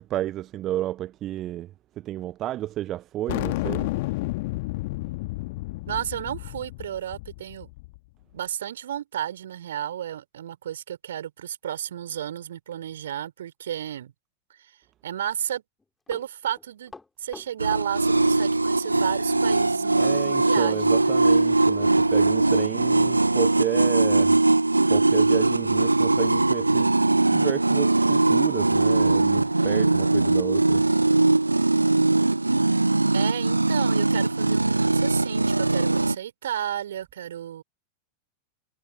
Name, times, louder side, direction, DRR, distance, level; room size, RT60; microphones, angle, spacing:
voice 1, 0.0-4.2 20.0-24.4 24.9-26.9 27.3-30.9, right 13 dB, 35° right, 0.6 m, -32 dB
sound 1, 3.3-8.0, left 21 dB, 50° left, 1.8 m, -31 dB
voice 2, 5.8-7.7 8.3-14.1 14.6-14.7 15.0-15.6 16.1-16.9 17.2-21.2 33.1-37.6, right 10 dB, 60° right, 4.8 m, -32 dB
Run, 15.8-18.7 19.0-19.1 20.4-20.6 20.9-21.0 21.5-21.6 22.0-22.1 22.7-22.8, left 3 dB, 10° left, 4.1 m, -47 dB
sound 2, 17.6-36.1, right 2 dB, 85° right, 0.3 m, -21 dB
figure-of-eight pair, 90°, 0 cm